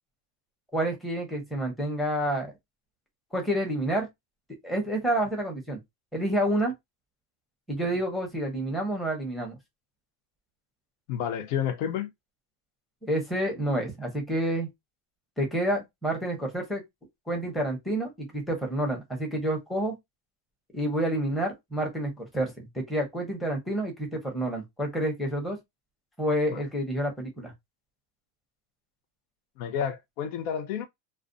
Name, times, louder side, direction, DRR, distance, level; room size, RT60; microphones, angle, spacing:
voice 1, 0.7-2.5 3.3-4.1 4.5-5.8 6.1-6.7 7.7-9.6 13.0-14.7 15.4-16.8 17.3-19.9 20.7-25.6 26.2-27.5, right 1 dB, ahead, 0.7 m, -29 dB
voice 2, 11.1-12.1 26.5-26.6 29.6-30.9, left 8 dB, 75° left, 0.7 m, -30 dB
2.4 x 2.2 x 2.5 m
supercardioid pair, 135°, 46 cm